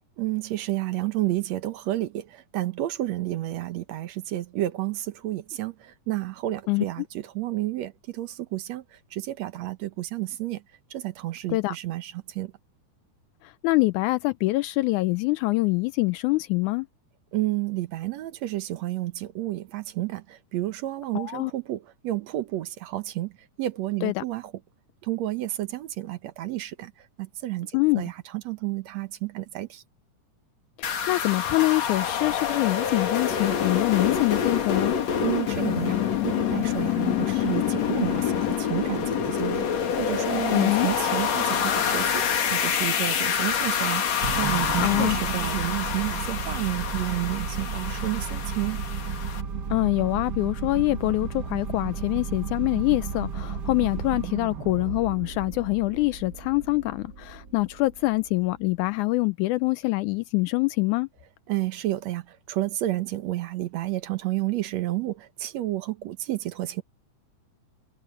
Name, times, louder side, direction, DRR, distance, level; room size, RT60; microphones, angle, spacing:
voice 1, 0.2-8.8 9.1-10.6 10.9-12.5 17.3-23.3 23.6-24.5 25.0-26.9 27.2-29.8 35.2-42.2 42.5-48.8 61.5-66.8, right 15 dB, 65° right, 2.1 m, -31 dB
voice 2, 13.4-16.9 21.1-21.5 24.0-24.2 27.7-28.0 30.8-34.9 40.5-40.9 44.8-45.2 49.7-61.1, left 22 dB, 80° left, 1.9 m, -25 dB
sound 1, 30.8-49.4, left 8 dB, 60° left, 3.0 m, -27 dB
sound 2, 44.2-58.7, right 6 dB, 45° right, 1.5 m, -33 dB
omnidirectional pair, 3.6 m